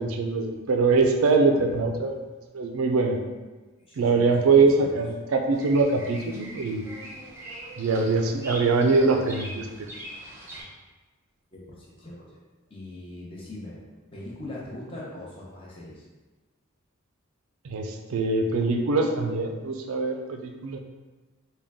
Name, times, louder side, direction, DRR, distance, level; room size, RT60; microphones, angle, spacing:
voice 1, 0.0-2.2 2.5-3.2 4.0-6.8 7.8-9.9 17.6-20.8, right 3 dB, 70° right, 3 dB, 0.4 m, -23 dB
voice 2, 3.9-5.0 11.5-12.3 12.7-13.8 14.1-16.1, left 1 dB, 25° left, -6 dB, 0.8 m, -41 dB
Bird vocalization bird call bird song, 5.5-10.6, right 1 dB, 10° right, 0.5 m, -42 dB
3.7 x 2.2 x 3.4 m, 1.2 s
head